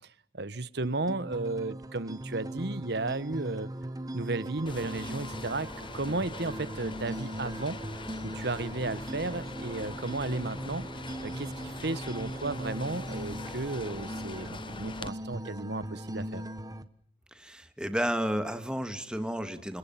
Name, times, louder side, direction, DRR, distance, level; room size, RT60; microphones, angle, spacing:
voice 1, 0.3-3.7 4.1-5.7 5.9-7.8 8.2-10.9 11.2-16.4, right 2 dB, 65° right, 16 dB, 1.2 m, -34 dB
sound 1, 0.8-16.8, right 1 dB, 20° right, 1.3 m, -39 dB
sound 2, 4.7-15.1, left 3 dB, 30° left, 1.0 m, -43 dB
voice 2, 17.3-19.8, equal, 5° right, 9 dB, 2.2 m, -32 dB
29.5 x 26.5 x 5.8 m, 0.63 s
head